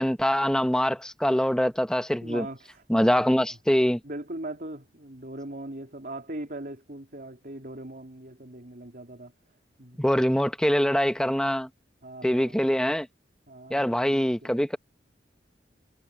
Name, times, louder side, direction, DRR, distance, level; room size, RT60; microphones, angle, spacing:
voice 1, 0.0-2.5 2.9-4.0 10.0-11.7 12.2-13.1 13.7-14.8, equal, 5° left, 0.9 m, -24 dB
voice 2, 2.2-3.4 4.0-9.3 9.8-10.0 12.0-12.6 13.5-14.6, right 1 dB, 55° right, 3.4 m, -40 dB
head